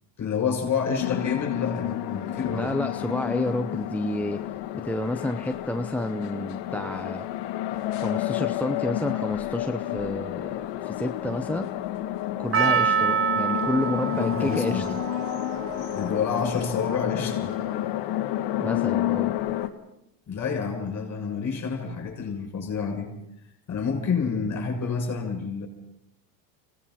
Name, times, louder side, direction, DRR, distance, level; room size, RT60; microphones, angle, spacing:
voice 1, 0.2-2.7 14.1-14.9 15.9-17.5 20.3-23.1 23.7-25.7, left 6 dB, 35° left, 3 dB, 7.2 m, -28 dB
sound 1, 1.0-19.7, left 14 dB, 60° left, 2.0 m, -30 dB
voice 2, 2.5-4.4 4.7-7.3 7.9-11.7 12.4-14.8 18.6-19.3, left 1 dB, 5° left, 6 dB, 0.7 m, -30 dB
Percussion, 12.5-16.9 17.5-17.6, right 6 dB, 25° right, 0.9 m, -27 dB
26.0 x 18.5 x 5.8 m, 0.80 s
supercardioid pair, 110°, 48 cm